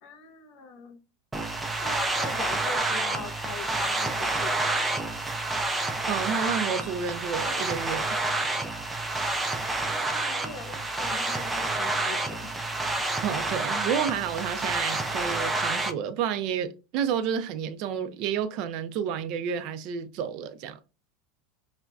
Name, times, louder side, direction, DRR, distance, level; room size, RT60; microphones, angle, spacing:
voice 1, 0.0-1.0 1.7-5.2 9.0-9.5 9.9-12.6, left 4 dB, 55° left, 1.2 m, -42 dB
sound 1, 1.3-15.9, right 2 dB, 10° right, 0.6 m, -29 dB
voice 2, 6.1-8.2 13.2-20.8, right 8 dB, 55° right, 0.5 m, -30 dB
5.8 x 2.2 x 2.5 m
supercardioid pair, 135°, 0 cm